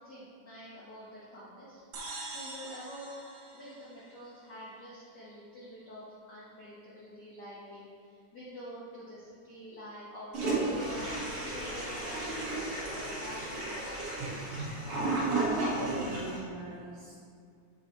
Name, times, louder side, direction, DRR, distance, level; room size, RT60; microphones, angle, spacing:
voice 1, 0.0-1.8 2.3-3.1 3.5-14.0, equal, 75° left, -8 dB, 0.9 m, -47 dB
sound 1, 1.9-4.5, right 2 dB, 85° right, 1.0 m, -44 dB
Toilet flush, 10.3-16.4, right 2 dB, 50° right, 2.4 m, -33 dB
voice 2, 15.5-17.1, right 2 dB, 70° right, -4 dB, 1.5 m, -40 dB
6.8 x 4.8 x 4.2 m, 2.3 s
omnidirectional pair, 3.5 m